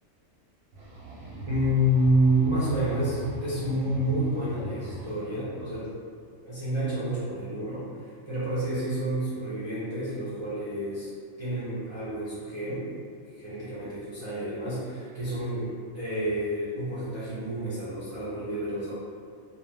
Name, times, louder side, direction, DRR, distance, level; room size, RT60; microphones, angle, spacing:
sound 1, 0.7-5.8, right 1 dB, 90° right, 1.0 m, -40 dB
voice 1, 1.5-5.9 6.4-11.1 11.4-12.9 13.4-18.9, right 1 dB, 45° right, -12 dB, 0.3 m, -29 dB
2.5 x 2.2 x 3.2 m, 2.2 s
omnidirectional pair, 1.4 m